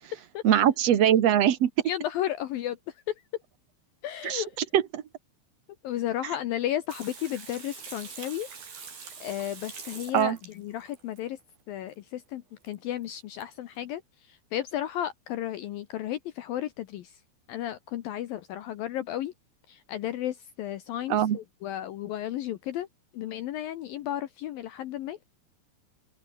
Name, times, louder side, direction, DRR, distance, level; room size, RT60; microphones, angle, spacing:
voice 1, 0.4-1.7 4.2-4.4 4.7-5.0 10.1-10.4 21.1-21.4, right 10 dB, 80° right, 1.4 m, -22 dB
voice 2, 1.9-2.8 3.1-3.2 4.0-4.5 5.8-8.5 9.2-11.4 11.7-17.2 17.5-19.3 19.7-22.9 23.1-25.2, left 12 dB, 75° left, 2.1 m, -33 dB
Water tap faucet / Sink (filling or washing), 6.9-11.2 12.7-12.8 13.0-13.1 13.4-13.5, right 5 dB, 50° right, 7.1 m, -44 dB
omnidirectional pair, 5.5 m